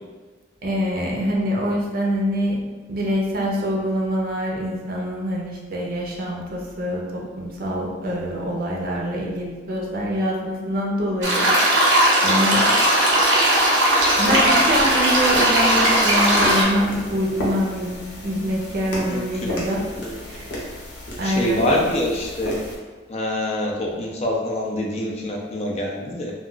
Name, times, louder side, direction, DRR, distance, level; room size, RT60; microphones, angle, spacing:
voice 1, 0.6-2.6 2.9-11.4 11.7-12.8 14.2-19.8 20.2-20.6 21.2-21.6, equal, 55° right, -2 dB, 0.5 m, -25 dB
sound 1, 11.2-16.6, right 1 dB, 90° right, 0.8 m, -18 dB
sound 2, 14.0-22.8, equal, 75° left, 0.8 m, -32 dB
voice 2, 21.2-22.5 23.1-26.3, left 1 dB, 35° left, -1 dB, 0.4 m, -25 dB
2.3 x 2.3 x 3.7 m, 1.3 s
head